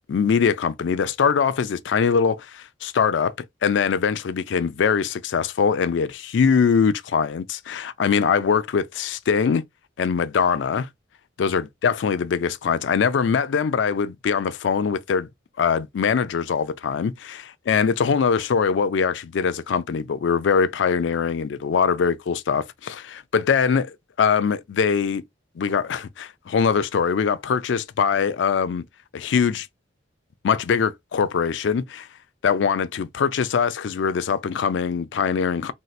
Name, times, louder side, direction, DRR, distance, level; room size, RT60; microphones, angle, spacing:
voice 1, 0.1-3.3 3.6-9.6 10.0-10.9 11.4-15.3 15.6-25.2 25.6-28.8 29.1-29.7 30.4-32.1 32.4-35.7, left 6 dB, 75° left, 0.4 m, -22 dB
3.1 x 2.7 x 2.3 m
head